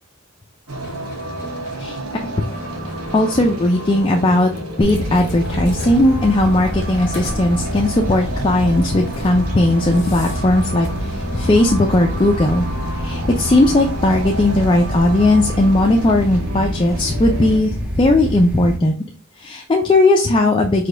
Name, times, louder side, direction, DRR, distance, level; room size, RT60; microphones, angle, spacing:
sound 1, 0.7-17.6, right 1 dB, 85° right, 1.1 m, -30 dB
sound 2, 0.8-1.8 2.4-3.9 4.6-7.5 7.9-8.1 8.8-9.4 9.7-10.9, left 2 dB, 50° left, 0.9 m, -38 dB
voice 1, 3.1-4.5 4.8-12.6 13.0-18.9 19.4-20.9, left 1 dB, 20° left, 2 dB, 0.3 m, -17 dB
sound 3, 4.8-18.8, equal, 5° right, 0.7 m, -27 dB
4.9 x 2.2 x 3.7 m, 0.41 s
head